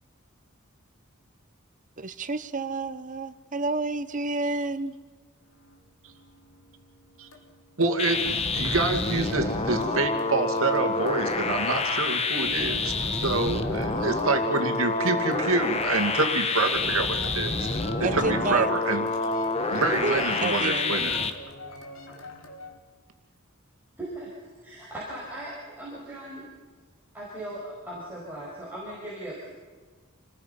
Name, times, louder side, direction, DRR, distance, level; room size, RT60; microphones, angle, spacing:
voice 1, 2.0-5.0 18.0-18.7 20.0-20.9, right 3 dB, 40° right, 0.9 m, -29 dB
sound 1, 5.4-22.8, left 1 dB, 70° left, 2.8 m, -44 dB
voice 2, 7.8-19.1 19.7-21.2, right 3 dB, 80° right, 2.4 m, -27 dB
sound 2, 8.0-21.3, left 3 dB, 30° left, 1.2 m, -28 dB
voice 3, 24.0-26.5 27.1-29.5, right 1 dB, 10° right, 5.9 m, -38 dB
28.0 x 20.0 x 5.7 m
head